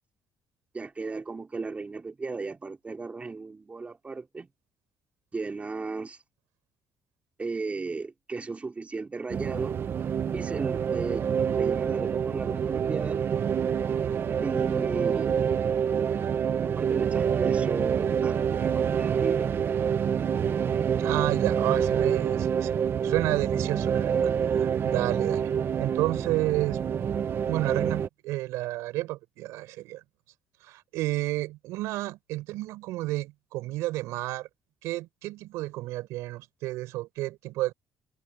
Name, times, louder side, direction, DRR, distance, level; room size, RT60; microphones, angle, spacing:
voice 1, 0.7-4.5 5.3-6.2 7.4-9.7 10.3-13.2 14.4-15.4 16.6-19.5, right 4 dB, 25° right, 4.0 m, -35 dB
sound 1, 9.3-28.1, right 7 dB, 50° right, 1.2 m, -27 dB
voice 2, 21.0-22.7 23.0-25.5 25.8-26.8 27.4-30.0 30.6-34.5 34.8-37.7, right 17 dB, 85° right, 5.0 m, -31 dB
supercardioid pair, 80°, 5 cm